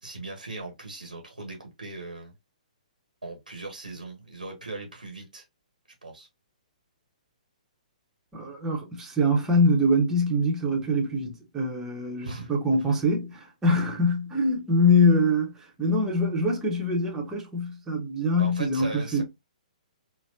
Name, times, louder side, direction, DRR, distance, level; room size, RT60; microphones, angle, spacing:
voice 1, 0.0-2.3 3.2-5.4 6.0-6.3 12.2-12.5 18.4-19.2, right 2 dB, 85° right, 1.2 m, -39 dB
voice 2, 8.3-19.2, left 1 dB, 10° right, 1.0 m, -24 dB
4.1 x 2.2 x 2.5 m
figure-of-eight pair, 125°, 4 cm